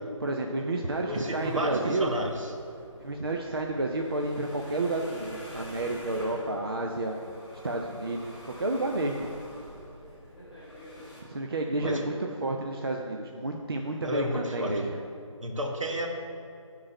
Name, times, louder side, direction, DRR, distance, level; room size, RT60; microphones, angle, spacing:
voice 1, 0.2-2.1 3.0-7.2 7.6-9.3 11.2-15.0, right 2 dB, 45° right, 1 dB, 0.5 m, -30 dB
sound 1, 1.1-11.2, equal, ahead, 1.3 m, -46 dB
voice 2, 1.1-2.5 11.8-12.2 14.0-14.8 15.4-16.1, equal, 70° right, 2 dB, 1.2 m, -32 dB
8.5 x 3.9 x 5.8 m, 2.5 s
figure-of-eight pair, 160°, 17 cm